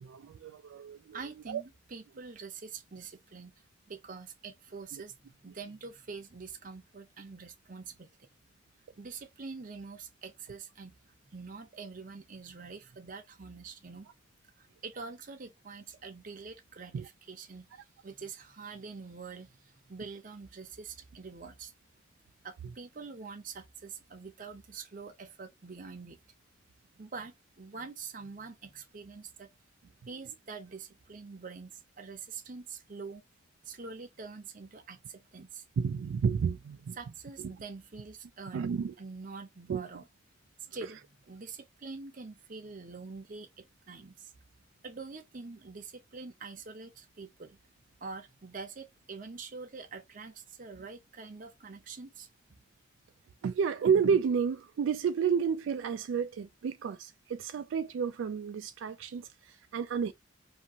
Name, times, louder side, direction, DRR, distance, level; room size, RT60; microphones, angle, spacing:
voice 1, 0.0-1.2 1.5-1.6 16.9-17.1 35.8-37.0 37.4-37.5 38.5-38.9 39.7-39.8 53.4-60.1, right 6 dB, 75° right, 0.3 m, -31 dB
voice 2, 1.1-3.5 3.9-8.1 9.0-10.9 11.3-14.1 14.6-21.7 22.4-26.2 27.0-29.5 30.1-33.2 33.6-35.6 37.0-38.7 39.0-40.1 40.7-44.3 44.8-47.6 48.0-52.3, right 4 dB, 45° right, 0.7 m, -45 dB
2.7 x 2.5 x 2.7 m
head